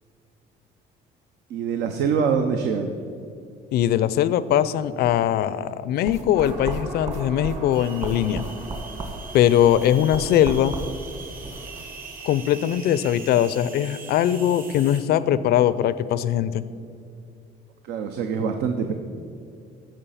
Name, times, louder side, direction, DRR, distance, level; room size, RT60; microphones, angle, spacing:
voice 1, 1.5-2.9 17.9-18.9, right 6 dB, 85° right, 6 dB, 0.7 m, -24 dB
voice 2, 3.7-8.4 9.3-10.7 12.2-16.7, left 11 dB, 70° left, 16 dB, 0.5 m, -21 dB
sound 1, 6.0-11.9, right 3 dB, 40° right, 1.8 m, -35 dB
sound 2, 6.3-15.0, right 3 dB, 55° right, 1.9 m, -40 dB
15.0 x 5.1 x 5.7 m, 2.3 s
cardioid pair, 110°, 17 cm